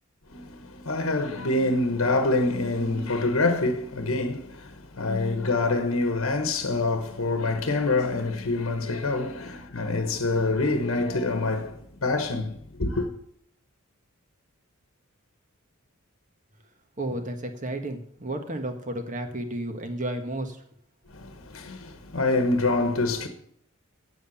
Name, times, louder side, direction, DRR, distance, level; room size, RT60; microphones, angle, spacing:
voice 1, 0.3-13.1 21.1-23.3, left 2 dB, 75° left, 1.2 m, -26 dB
voice 2, 17.0-20.6, right 1 dB, 35° right, 1.5 m, -32 dB
9.0 x 7.8 x 7.1 m
head